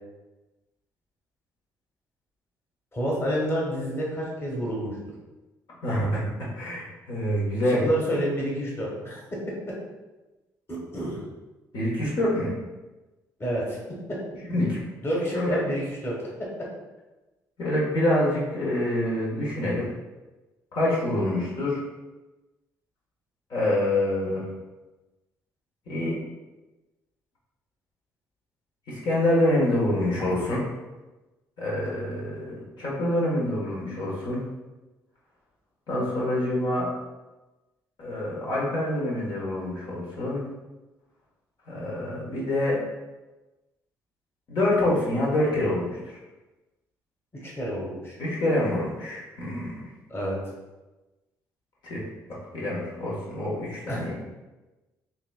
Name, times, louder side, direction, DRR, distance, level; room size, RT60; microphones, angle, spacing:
voice 1, 2.9-5.0 7.7-9.8 10.7-11.2 13.4-13.8 14.1-14.2 15.0-16.2 47.4-48.2 50.1-50.4 53.9-54.1, equal, 30° left, -3 dB, 1.4 m, -29 dB
voice 2, 5.8-7.9 11.7-12.5 14.5-14.8 15.3-15.6 17.6-19.8 20.7-21.8 23.5-24.4 25.9-26.2 28.9-30.6 31.6-34.4 35.9-36.9 38.0-40.4 41.7-42.8 44.5-46.2 48.2-49.7 51.8-52.0 52.5-54.1, left 1 dB, 65° left, -6 dB, 1.4 m, -26 dB
5.7 x 2.9 x 2.3 m, 1.1 s
supercardioid pair, 65°, 8 cm